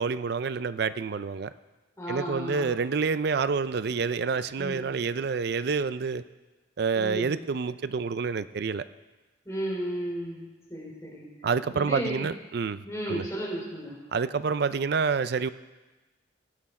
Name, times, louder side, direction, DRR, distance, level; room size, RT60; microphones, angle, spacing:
voice 1, 0.0-1.5 2.1-6.2 6.8-8.8 11.4-13.3 14.1-15.5, right 5 dB, 55° right, 14 dB, 0.4 m, -28 dB
voice 2, 2.0-2.7 4.6-4.8 6.9-7.3 9.4-10.4 10.7-11.2 11.7-12.3 12.8-14.0, equal, 15° left, -3 dB, 3.2 m, -34 dB
17.0 x 8.5 x 4.3 m, 1.2 s
head